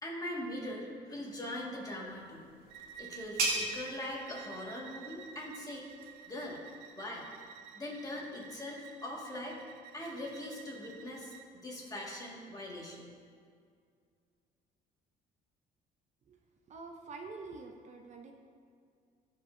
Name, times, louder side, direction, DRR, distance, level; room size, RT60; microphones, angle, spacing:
voice 1, 0.0-2.4 3.0-5.9 6.3-6.6 7.0-7.2 7.7-9.6 9.9-11.3 11.6-13.1, left 1 dB, 20° left, -3 dB, 1.9 m, -41 dB
sound 1, 2.0-7.5, right 2 dB, 60° right, 1.7 m, -40 dB
Bowed string instrument, 2.7-11.5, right 9 dB, 80° right, 0.5 m, -51 dB
voice 2, 16.7-18.3, right 3 dB, 45° right, 3 dB, 0.7 m, -46 dB
15.5 x 5.3 x 2.7 m, 2.2 s
cardioid pair, 110°, 17 cm